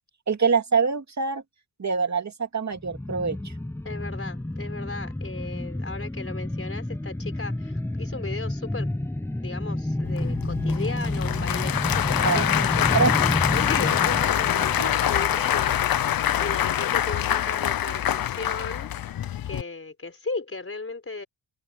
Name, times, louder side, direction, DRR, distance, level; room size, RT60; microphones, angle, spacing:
voice 1, 0.3-1.4 1.8-3.4 12.2-12.5 12.9-13.2, right 5 dB, 40° right, 2.6 m, -24 dB
sound 1, 2.8-16.0 16.3-16.4, left 1 dB, 5° left, 0.7 m, -30 dB
voice 2, 3.8-8.9 9.4-18.9 19.4-21.3, left 3 dB, 30° left, 4.7 m, -36 dB
Applause / Crowd, 10.0-19.6, left 11 dB, 50° left, 0.7 m, -25 dB
cardioid pair, 80°, 44 cm